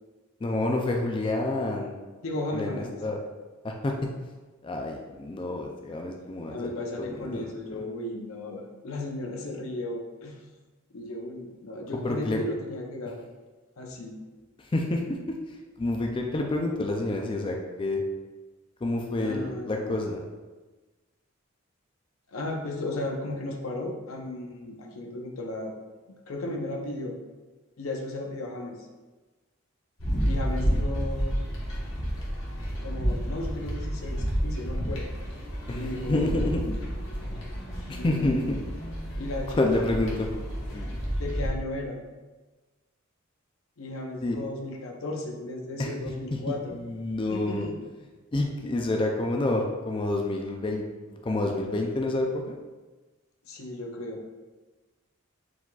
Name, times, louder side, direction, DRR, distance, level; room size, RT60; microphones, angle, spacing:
voice 1, 0.4-1.9 2.5-3.2 3.6-4.1 4.6-6.7 7.0-7.8 11.9-12.4 14.6-15.2 15.5-18.0 18.8-20.2 35.7-36.8 37.9-38.6 39.6-40.3 40.7-41.0 44.2-44.4 45.8-45.9 46.3-47.7 48.3-52.6, left 2 dB, 25° left, 1 dB, 0.3 m, -28 dB
voice 2, 2.2-3.0 6.5-10.4 10.9-13.2 13.8-14.2 19.2-20.0 22.3-25.7 26.1-27.1 27.8-28.8 30.2-31.4 32.8-35.1 35.7-36.5 37.9-38.5 39.2-40.0 41.2-42.0 43.8-46.8 47.3-47.7 53.5-54.2, left 2 dB, 90° left, 1 dB, 0.7 m, -35 dB
sound 1, 30.0-41.5, equal, 65° left, 1.1 m, -30 dB
4.8 x 3.9 x 2.3 m, 1.2 s
head